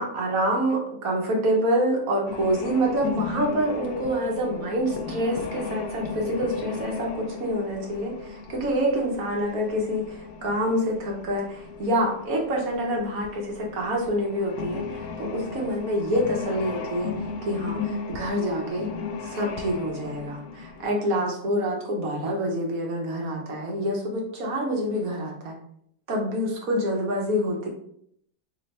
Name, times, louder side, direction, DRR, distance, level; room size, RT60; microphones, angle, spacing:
voice 1, 0.0-17.1 17.4-18.9 19.2-25.5 26.1-27.7, equal, 70° right, -1 dB, 1.3 m, -27 dB
sound 1, 2.3-20.9, left 5 dB, 85° left, 1.1 m, -36 dB
3.3 x 3.2 x 4.0 m, 0.69 s
omnidirectional pair, 1.6 m